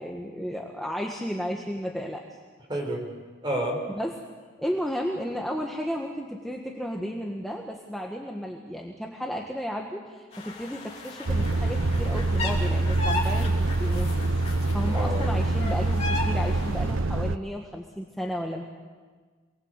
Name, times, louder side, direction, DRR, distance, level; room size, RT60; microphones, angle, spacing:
voice 1, 0.0-2.2 3.9-4.2 4.6-18.7, equal, ahead, -1 dB, 1.5 m, -33 dB
voice 2, 2.7-3.0 3.4-3.8 14.9-15.3, right 1 dB, 25° right, 1 dB, 5.1 m, -29 dB
sound 1, 10.3-16.9, left 2 dB, 35° left, 3.5 m, -36 dB
Truck, 11.3-17.4, right 2 dB, 90° right, 0.8 m, -25 dB
27.5 x 19.5 x 8.2 m, 1.5 s
head